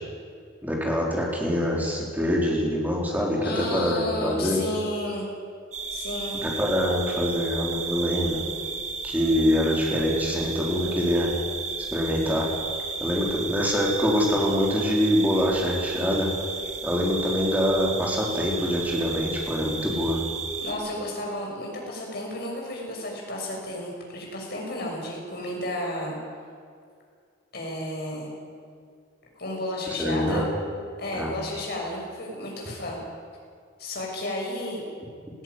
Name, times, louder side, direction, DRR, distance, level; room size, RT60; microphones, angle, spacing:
voice 1, 0.6-4.6 6.4-8.4 9.0-11.3 11.9-12.5 13.0-16.3 16.8-20.2 30.0-30.4 31.1-31.3, equal, 10° right, -2 dB, 4.0 m, -24 dB
voice 2, 3.4-5.3 5.9-6.4 20.6-26.2 27.5-28.3 29.4-30.4 31.0-33.0 33.8-34.8, left 1 dB, 50° left, -1 dB, 6.5 m, -32 dB
sound 1, 5.7-20.7, right 5 dB, 35° right, 2.0 m, -33 dB
19.0 x 15.5 x 9.8 m, 2.2 s
head